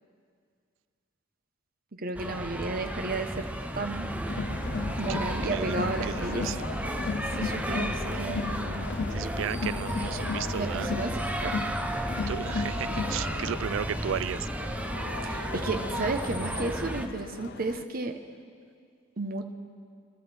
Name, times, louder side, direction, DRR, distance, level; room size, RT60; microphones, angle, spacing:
voice 1, 1.9-3.5 3.7-4.1 5.0-6.5 7.3-8.9 10.5-11.6 15.2-18.2 19.2-19.5, right 3 dB, 45° right, 5 dB, 0.9 m, -33 dB
sound 1, 2.1-17.1, right 1 dB, 5° right, 0.6 m, -33 dB
Crowd, 4.3-17.8, left 4 dB, 55° left, 0.5 m, -36 dB
voice 2, 9.1-10.9 12.3-14.5, right 8 dB, 70° right, 16 dB, 0.4 m, -34 dB
25.5 x 12.5 x 3.4 m, 2.2 s
head